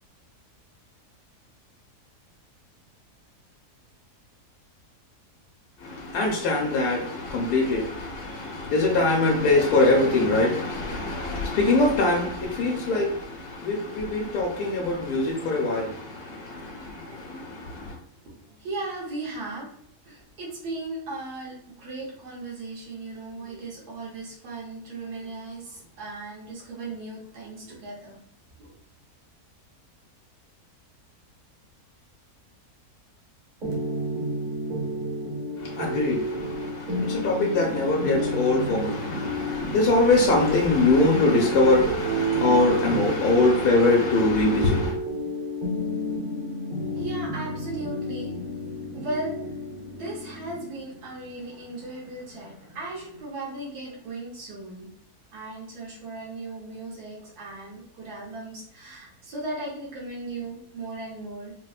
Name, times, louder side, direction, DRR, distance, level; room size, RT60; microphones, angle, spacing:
voice 1, 5.8-18.0 35.6-44.9, left 2 dB, 80° left, 1.2 m, -23 dB
voice 2, 18.2-19.7 20.0-28.2 28.6-28.7 46.9-48.4 48.9-49.5 49.9-54.9 55.3-61.5, right 2 dB, 80° right, 1.6 m, -37 dB
sound 1, 33.6-53.2, equal, 40° right, 0.9 m, -31 dB
4.1 x 2.1 x 2.3 m
omnidirectional pair, 1.7 m